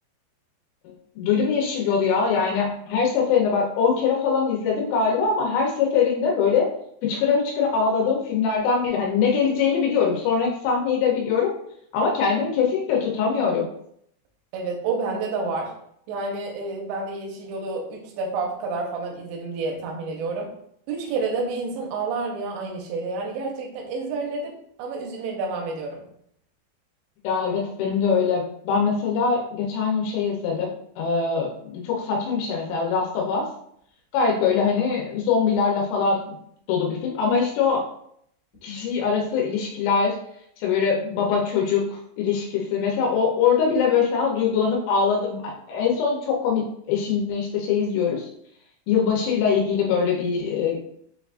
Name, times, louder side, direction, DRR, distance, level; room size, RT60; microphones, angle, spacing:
voice 1, 0.8-6.7 7.0-11.5 11.9-13.7 27.2-30.7 31.0-33.5 34.1-36.4 36.7-37.8 38.6-40.2 40.6-48.3 48.9-50.8, left 6 dB, 90° left, -1 dB, 3.2 m, -23 dB
voice 2, 14.5-15.7 16.1-20.5 20.9-26.0, right 3 dB, 85° right, 0 dB, 2.5 m, -29 dB
7.0 x 2.4 x 2.3 m, 0.69 s
omnidirectional pair, 5.5 m